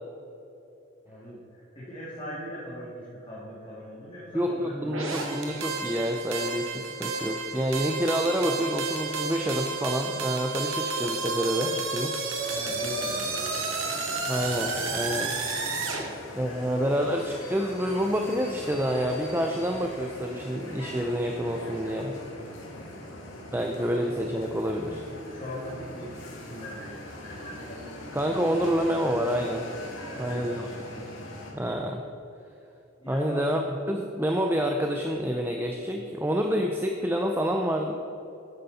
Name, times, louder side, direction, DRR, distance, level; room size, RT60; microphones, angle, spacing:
voice 1, 1.0-5.1 12.5-13.5 16.4-16.9 22.8-23.1 23.8-23.9 25.3-27.6 30.0-31.1 33.0-33.5, equal, 25° left, -9 dB, 2.5 m, -40 dB
voice 2, 4.3-12.2 14.2-15.4 16.3-22.2 23.5-25.1 28.1-29.7 30.2-30.7 31.0-31.1 31.5-32.0 33.1-37.9, equal, 10° right, 2 dB, 0.5 m, -28 dB
sound 1, 4.9-16.0, right 4 dB, 80° right, 1.8 m, -31 dB
sound 2, 12.4-31.5, left 1 dB, 75° left, 2.4 m, -41 dB
12.5 x 9.2 x 4.2 m, 2.9 s
head